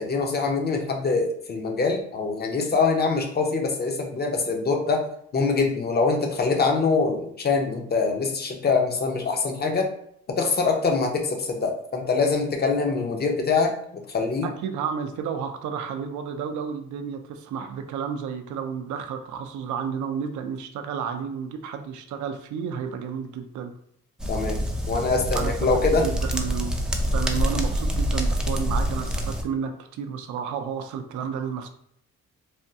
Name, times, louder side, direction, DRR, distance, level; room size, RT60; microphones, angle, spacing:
voice 1, 0.0-5.0 5.3-9.9 10.3-14.5 24.3-24.6 24.9-26.1, left 4 dB, 35° left, 3 dB, 0.7 m, -24 dB
voice 2, 14.4-23.7 25.3-25.5 25.9-26.8 27.1-31.7, right 7 dB, 75° right, 6 dB, 0.5 m, -31 dB
sound 1, 24.2-29.4, equal, ahead, 0.4 m, -26 dB
3.4 x 2.2 x 2.7 m, 0.69 s
cardioid pair, 90°, 30 cm